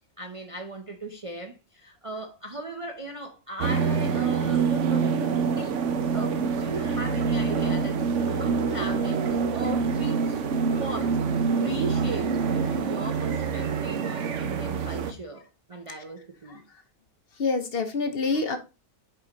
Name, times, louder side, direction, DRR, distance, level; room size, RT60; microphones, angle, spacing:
voice 1, 0.2-5.2 5.5-5.7 6.1-8.0 8.3-10.4 10.8-16.6, right 2 dB, 35° right, 0.5 m, -38 dB
sound 1, 3.6-15.1, right 5 dB, 65° right, 1.0 m, -26 dB
voice 2, 17.4-18.6, left 4 dB, 50° left, 1.0 m, -26 dB
5.9 x 4.9 x 3.8 m
omnidirectional pair, 1.4 m